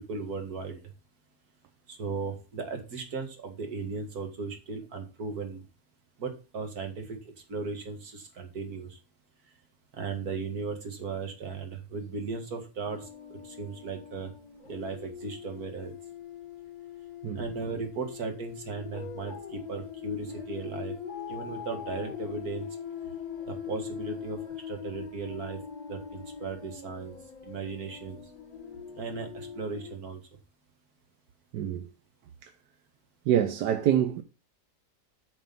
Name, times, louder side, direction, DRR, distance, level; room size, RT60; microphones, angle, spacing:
voice 1, 0.1-0.8 1.9-5.6 6.2-7.2 7.5-9.0 9.9-13.1 13.4-14.3 14.7-16.0 17.4-20.9 21.3-22.7 23.5-24.4 24.7-25.6 25.9-27.2 27.5-28.2 29.0-30.2, right 4 dB, 65° right, 2.3 m, -36 dB
sound 1, 12.9-30.0, left 8 dB, 65° left, 1.7 m, -42 dB
voice 2, 31.5-31.9 33.3-34.2, right 10 dB, 85° right, 1.3 m, -25 dB
9.2 x 4.9 x 5.5 m
omnidirectional pair, 1.7 m